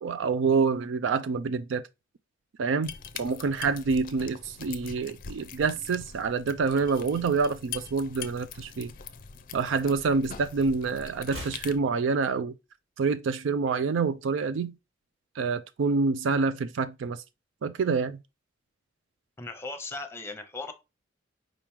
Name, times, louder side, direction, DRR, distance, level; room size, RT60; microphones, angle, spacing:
voice 1, 0.0-1.8 2.6-8.9 9.5-12.5 13.0-14.7 15.4-17.2 17.6-18.2, right 4 dB, 70° right, 0.4 m, -27 dB
sound 1, 2.8-11.8, left 7 dB, 45° left, 0.5 m, -43 dB
sound 2, 4.1-6.4 6.7-7.0 7.3-8.8 9.0-10.4 10.7-12.8 13.0-13.1, equal, 85° right, 2.3 m, -49 dB
voice 2, 19.4-20.7, left 3 dB, 15° left, 0.8 m, -37 dB
4.9 x 3.0 x 3.5 m
head